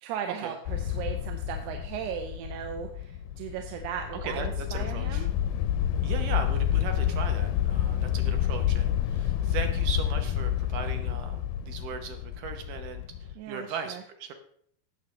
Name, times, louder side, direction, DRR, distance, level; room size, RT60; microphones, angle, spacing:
voice 1, 0.0-5.3 13.4-14.0, right 8 dB, 90° right, 4 dB, 2.8 m, -37 dB
sound 1, 0.7-13.3, left 11 dB, 85° left, 2.1 m, -29 dB
voice 2, 4.2-5.3 6.0-13.0 13.5-14.3, right 6 dB, 70° right, 6 dB, 2.0 m, -37 dB
18.0 x 6.7 x 3.2 m, 0.64 s
omnidirectional pair, 4.6 m